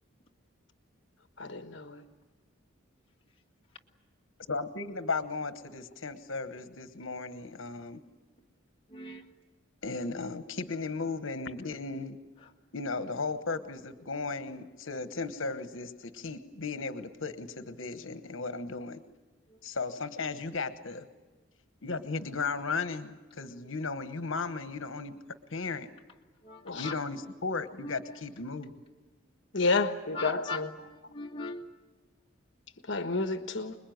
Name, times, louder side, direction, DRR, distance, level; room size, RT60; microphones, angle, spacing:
voice 1, 1.4-2.0 26.7-26.9 29.5-30.7 32.9-33.7, left 3 dB, 65° left, 8 dB, 1.3 m, -30 dB
voice 2, 4.5-8.0 9.8-12.2 12.7-19.0 19.6-21.1 21.8-25.1 25.5-25.9 26.7-28.7, left 4 dB, 80° left, 11 dB, 1.2 m, -35 dB
voice 3, 8.9-9.3 19.5-19.6 26.4-27.0 27.8-28.2 30.1-31.7, left 3 dB, 25° left, 0 dB, 2.0 m, -40 dB
26.5 x 21.5 x 9.3 m, 1.3 s
head